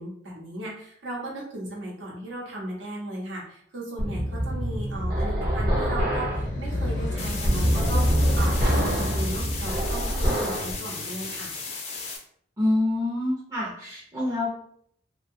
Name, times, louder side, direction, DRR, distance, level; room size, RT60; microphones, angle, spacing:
voice 1, 0.0-11.5, right 1 dB, 75° right, -3 dB, 0.8 m, -36 dB
sound 1, 4.0-10.7, equal, 50° right, 0.9 m, -25 dB
sound 2, 5.2-11.5, left 1 dB, 80° left, 0.7 m, -35 dB
sound 3, 7.2-12.2, left 4 dB, 35° left, 0.4 m, -35 dB
voice 2, 12.6-14.6, left 1 dB, 20° right, -6 dB, 0.5 m, -26 dB
2.7 x 2.2 x 2.6 m, 0.66 s
head